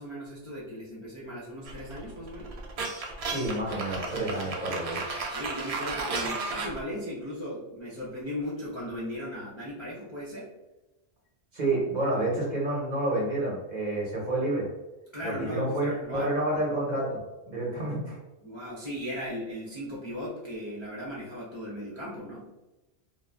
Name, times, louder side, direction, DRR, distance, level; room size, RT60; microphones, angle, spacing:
voice 1, 0.0-2.5 5.3-10.5 15.1-16.3 18.4-22.5, equal, 35° left, -8 dB, 0.5 m, -37 dB
sound 1, 1.7-6.8, right 3 dB, 60° right, 0.4 m, -34 dB
voice 2, 3.3-5.0 11.5-14.7 15.2-17.2 17.5-18.2, right 2 dB, 45° right, -5 dB, 0.9 m, -29 dB
2.5 x 2.0 x 3.3 m, 1.0 s
omnidirectional pair, 1.1 m